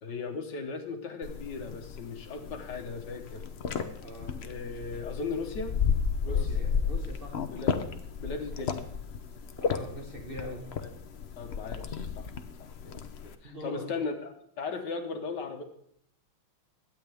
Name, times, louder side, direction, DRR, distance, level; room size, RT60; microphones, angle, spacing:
voice 1, 0.0-3.5 4.4-5.8 6.2-6.6 7.5-7.8 8.2-8.9 10.8-10.9 11.4-12.3 12.6-15.6, left 4 dB, 60° left, 5 dB, 1.6 m, -37 dB
sound 1, 1.2-13.3, left 6 dB, 85° left, 0.5 m, -33 dB
voice 2, 4.0-4.5 6.3-7.4 9.6-10.7 13.4-13.9, equal, 30° right, 2 dB, 1.2 m, -42 dB
22.5 x 8.9 x 3.5 m, 0.68 s
omnidirectional pair, 2.3 m